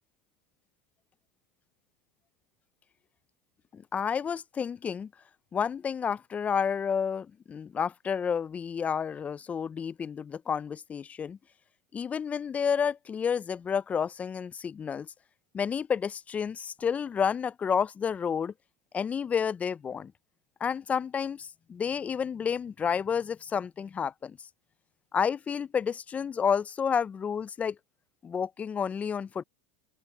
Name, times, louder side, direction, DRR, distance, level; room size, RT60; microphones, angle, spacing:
voice 1, 3.7-5.1 5.5-11.4 11.9-15.1 15.5-18.5 18.9-20.1 20.6-24.4 25.1-27.8 28.2-29.4, left 7 dB, 20° left, 0.4 m, -30 dB
open air
supercardioid pair, 125°, 7 cm